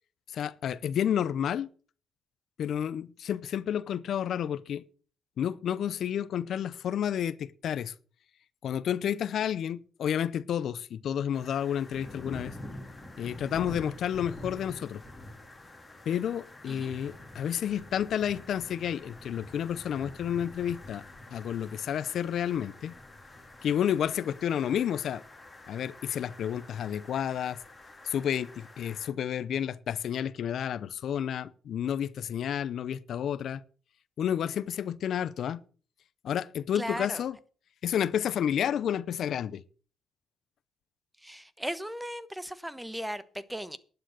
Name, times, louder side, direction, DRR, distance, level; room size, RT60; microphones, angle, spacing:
voice 1, 0.3-1.7 2.6-4.8 5.4-7.9 8.6-12.5 13.2-15.0 16.1-21.0 21.3-23.0 23.6-25.2 25.7-27.6 28.0-33.6 34.2-35.6 36.2-37.4 37.8-39.6, left 9 dB, 65° left, 0.6 m, -30 dB
sound 1, 11.3-29.1, left 1 dB, 15° left, 3.2 m, -47 dB
voice 2, 36.7-37.2 41.2-43.8, equal, 5° right, 1.1 m, -37 dB
11.5 x 9.0 x 6.4 m
cardioid pair, 90°, 0 cm